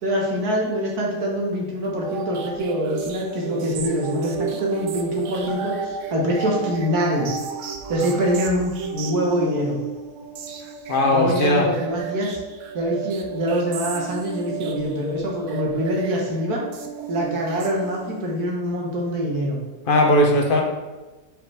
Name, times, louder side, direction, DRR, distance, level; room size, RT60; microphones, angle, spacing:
voice 1, 0.0-7.3 7.9-9.8 11.1-12.4 12.7-16.6 17.1-19.6, equal, 80° right, -2 dB, 1.9 m, -24 dB
sound 1, 1.8-18.3, right 6 dB, 60° right, 0.9 m, -32 dB
voice 2, 10.9-11.7 19.9-20.6, left 1 dB, 40° left, 1 dB, 1.0 m, -18 dB
5.0 x 4.5 x 4.9 m, 1.2 s
omnidirectional pair, 1.6 m